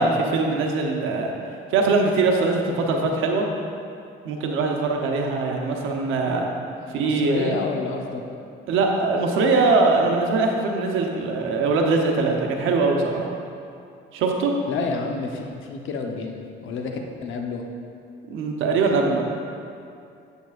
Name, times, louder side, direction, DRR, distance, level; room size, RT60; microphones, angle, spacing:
voice 1, 0.0-1.3 1.7-3.5 4.2-6.5 6.9-7.6 8.7-13.2 14.1-14.5 18.3-19.3, right 3 dB, 90° right, 1 dB, 0.9 m, -22 dB
voice 2, 6.8-8.2 14.7-16.9 17.2-17.6, left 4 dB, 80° left, 2 dB, 0.9 m, -29 dB
8.6 x 8.2 x 2.5 m, 2.5 s
cardioid pair, 90°, 20 cm